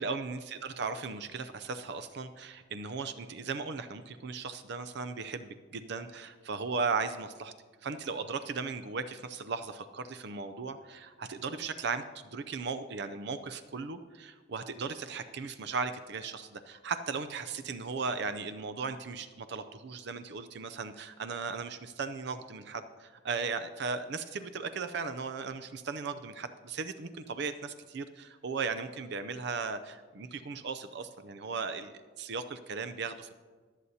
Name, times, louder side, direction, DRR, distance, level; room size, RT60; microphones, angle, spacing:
voice 1, 0.0-7.5 7.8-33.3, right 4 dB, 60° right, 11 dB, 0.5 m, -37 dB
24.0 x 8.1 x 2.8 m, 1.5 s
head